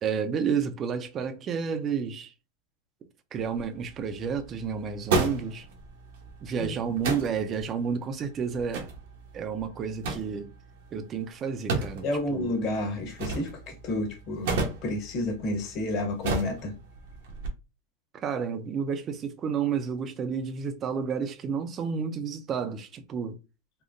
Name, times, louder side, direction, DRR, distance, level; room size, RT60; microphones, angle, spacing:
voice 1, 0.0-2.3 3.3-5.7 6.4-8.9 9.3-10.5 10.9-12.5 18.1-23.4, right 6 dB, 30° right, 0.5 m, -31 dB
sound 1, 3.4-17.5, right 3 dB, 75° right, 0.9 m, -35 dB
voice 2, 12.0-14.6 14.8-16.8, left 1 dB, 45° left, 1.3 m, -30 dB
3.6 x 2.1 x 2.5 m
supercardioid pair, 135°, 0 cm